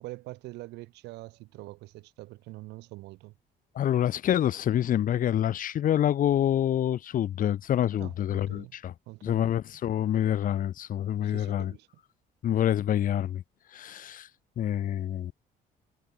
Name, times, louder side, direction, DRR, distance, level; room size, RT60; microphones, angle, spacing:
voice 1, 0.0-3.3 8.0-8.8 9.1-9.5 11.2-11.9, right 19 dB, 85° right, 2.3 m, -44 dB
voice 2, 3.7-8.9 9.2-11.7 12.4-13.4 13.7-14.3 14.6-15.3, left 11 dB, 55° left, 1.2 m, -27 dB
cardioid pair, 110°, 17 cm